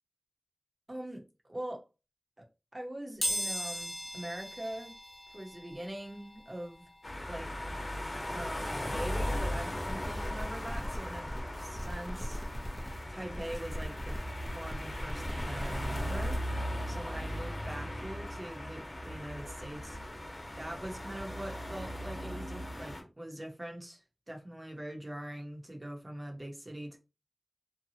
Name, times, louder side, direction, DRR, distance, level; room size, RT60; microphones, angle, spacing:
voice 1, 0.9-1.8 2.4-2.5 2.7-4.9 5.3-6.9 7.3-7.8 8.3-11.3 11.6-12.5 13.1-14.2 14.5-16.5 16.9-20.0 20.6-27.0, right 1 dB, 40° right, 0.9 m, -43 dB
sound 1, 3.2-13.9 14.3-14.4 15.6-15.7 16.0-18.1 18.4-21.1 21.4-21.6 21.9-22.0, equal, 75° left, 0.9 m, -42 dB
sound 2, 7.0-23.0, equal, 50° left, 1.0 m, -38 dB
sound 3, 9.0-9.4 9.8-13.0 13.3-16.4, equal, ahead, 0.8 m, -41 dB
2.8 x 2.3 x 2.8 m
wide cardioid pair, 45°, 0 cm